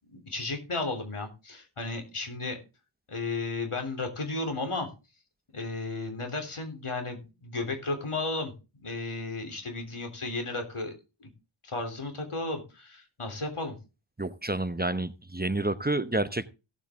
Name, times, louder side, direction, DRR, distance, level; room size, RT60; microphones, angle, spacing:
voice 1, 0.1-2.6 3.1-4.9 5.5-8.5 8.8-10.9 11.2-11.3 11.6-13.8, left 3 dB, 80° left, 3.5 m, -34 dB
voice 2, 14.2-16.5, right 2 dB, 20° right, 0.9 m, -29 dB
16.5 x 8.1 x 3.7 m
wide cardioid pair, 45°, 50 cm